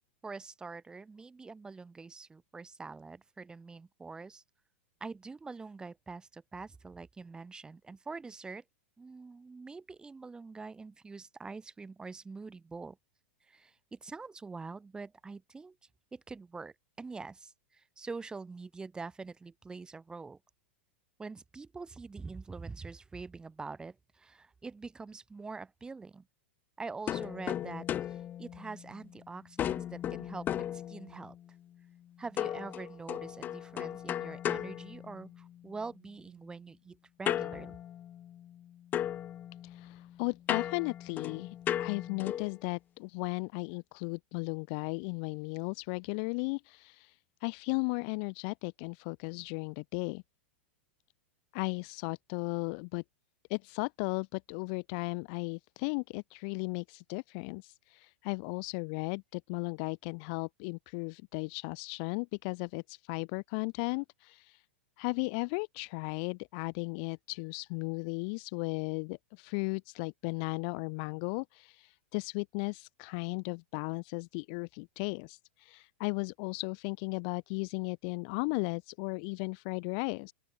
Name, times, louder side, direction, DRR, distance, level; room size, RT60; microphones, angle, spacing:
voice 1, 0.2-4.4 5.0-8.6 9.0-13.0 13.5-15.8 16.1-20.4 21.2-26.3 26.8-31.3 32.2-37.7, right 4 dB, 10° right, 0.7 m, -45 dB
sound 1, 27.1-29.2 29.6-31.4 32.4-35.6 37.3-38.6 38.9-42.6, left 11 dB, 25° left, 0.4 m, -36 dB
voice 2, 39.6-50.2 51.5-53.0 53.5-64.6 65.0-80.3, left 38 dB, 50° left, 0.7 m, -36 dB
open air
hypercardioid pair, 105°, 7 cm